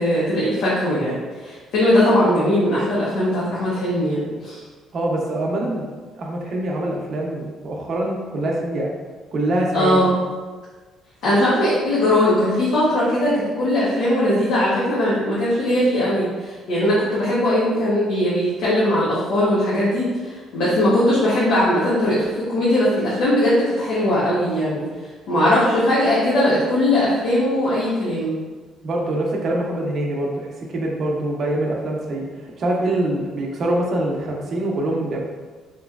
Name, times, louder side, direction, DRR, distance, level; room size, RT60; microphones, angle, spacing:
voice 1, 0.0-4.6 9.7-10.1 11.2-24.8 25.3-28.3, left 1 dB, 75° left, -9 dB, 1.0 m, -19 dB
voice 2, 4.9-5.9 6.1-8.9 9.3-10.1 28.8-35.2, right 1 dB, 45° right, -1 dB, 0.7 m, -24 dB
4.2 x 3.0 x 2.4 m, 1.4 s
cardioid pair, 130°, 0 cm